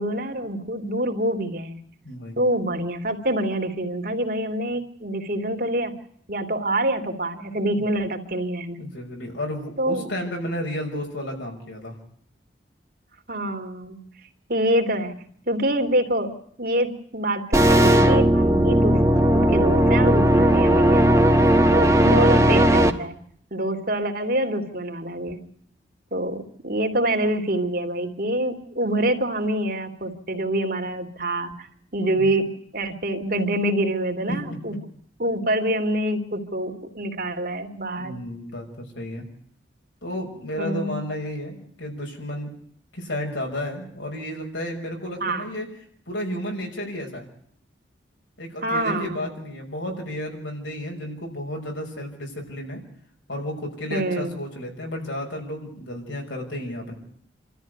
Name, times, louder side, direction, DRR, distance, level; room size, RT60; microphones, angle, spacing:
voice 1, 0.0-1.8 2.4-5.9 6.3-8.9 9.8-10.1 13.3-14.0 14.5-16.3 16.6-19.0 19.3-21.1 21.7-23.2 23.5-25.4 26.1-34.7 35.2-38.2 40.6-41.0 45.2-45.5 48.6-49.2 53.9-54.4, right 1 dB, 50° right, 5 dB, 2.9 m, -26 dB
voice 2, 2.0-2.4 7.7-7.9 8.8-11.9 21.3-21.9 32.2-32.3 34.3-34.4 38.0-39.2 40.0-42.5 42.9-45.7 46.1-47.2 48.4-52.8 53.3-56.9, left 1 dB, 85° left, 0 dB, 6.3 m, -32 dB
sound 1, 17.5-22.9, right 1 dB, 15° right, 1.5 m, -17 dB
27.5 x 13.5 x 9.5 m, 0.65 s
head